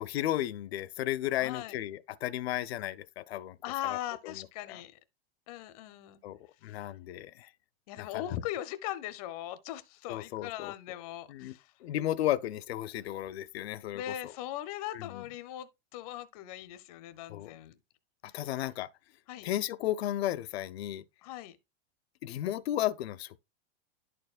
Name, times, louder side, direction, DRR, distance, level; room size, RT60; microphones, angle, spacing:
voice 1, 0.0-3.6 3.8-4.0 4.2-4.8 6.2-7.5 8.0-8.4 10.1-10.7 11.3-14.3 14.9-15.2 17.3-17.6 18.2-18.9 19.4-21.0 22.2-23.4, left 13 dB, 85° left, 0.6 m, -34 dB
voice 2, 1.4-1.8 3.6-5.0 5.5-6.2 6.7-6.8 7.9-11.7 13.9-17.7 19.3-19.5 21.2-21.6, left 12 dB, 40° left, 0.6 m, -39 dB
11.0 x 4.4 x 2.4 m
supercardioid pair, 170°, 31 cm